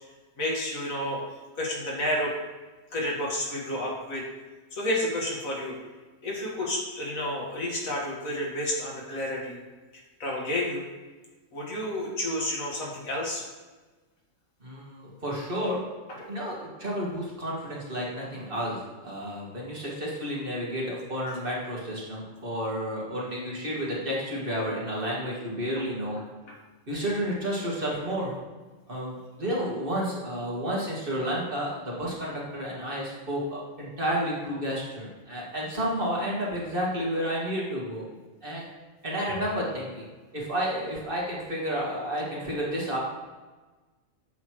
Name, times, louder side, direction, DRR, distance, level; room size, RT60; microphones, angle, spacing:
voice 1, 0.4-1.2 1.6-2.3 2.9-4.3 4.7-5.8 6.2-9.6 10.2-10.8 11.5-13.4, left 1 dB, 85° left, -3 dB, 2.1 m, -30 dB
voice 2, 14.6-15.8 16.3-26.2 26.9-28.3 28.9-38.0 38.4-38.6 39.0-40.1 40.3-43.0, equal, 40° right, -4 dB, 2.0 m, -31 dB
8.1 x 6.5 x 3.1 m, 1.3 s
omnidirectional pair, 1.4 m